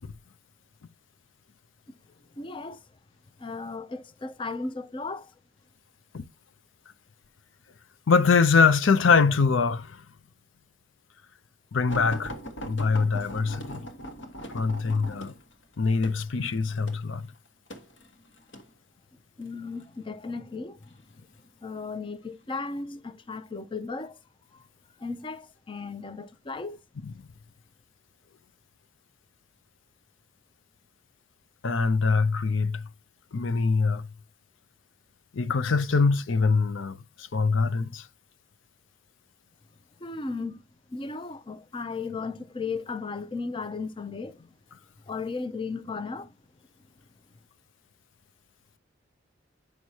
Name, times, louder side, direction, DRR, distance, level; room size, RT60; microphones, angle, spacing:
voice 1, 2.3-2.8 3.4-5.3 19.4-21.0 21.6-24.2 24.5-24.6 25.0-26.8 40.0-40.6 40.9-44.5 45.1-46.3, left 4 dB, 25° left, 0.5 m, -35 dB
voice 2, 8.1-10.0 11.7-12.3 12.6-13.8 14.5-15.3 15.8-17.2 27.0-27.1 31.6-32.8 33.3-34.1 35.3-38.1, left 4 dB, 85° left, 0.6 m, -23 dB
sound 1, 11.9-18.7 19.5-19.9 20.8-21.5 22.2-22.4 22.8-22.9, right 1 dB, 70° left, 1.5 m, -41 dB
9.2 x 6.2 x 2.8 m
head